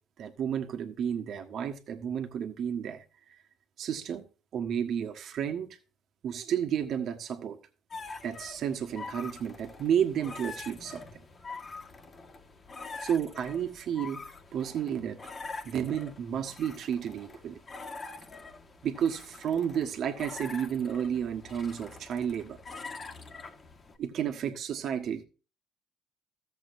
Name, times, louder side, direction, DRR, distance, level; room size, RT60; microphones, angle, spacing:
voice 1, 0.2-3.0 3.8-4.2 4.5-5.7 6.2-7.6 8.2-11.2 13.0-14.2 14.5-15.2 15.6-17.6 18.8-22.6 24.0-25.2, right 8 dB, 60° right, 1.5 m, -31 dB
sound 1, 7.9-24.0, left 3 dB, 35° left, 1.6 m, -45 dB
14.0 x 7.6 x 2.7 m
supercardioid pair, 90°, 0 cm